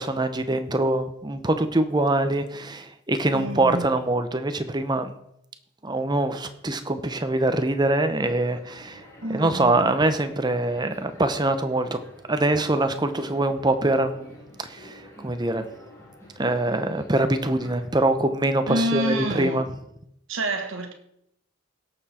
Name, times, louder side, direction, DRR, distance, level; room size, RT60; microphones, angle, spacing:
voice 1, 0.0-5.1 5.8-9.0 9.3-12.0 12.3-14.3 14.6-15.6 16.4-19.7, right 2 dB, 20° right, 0.8 m, -24 dB
voice 2, 3.3-3.9 9.2-10.0 18.7-19.7 20.3-20.9, right 1 dB, 70° right, 1.5 m, -28 dB
sound 1, 8.2-17.9, equal, 15° left, 2.9 m, -48 dB
17.0 x 7.0 x 4.3 m
head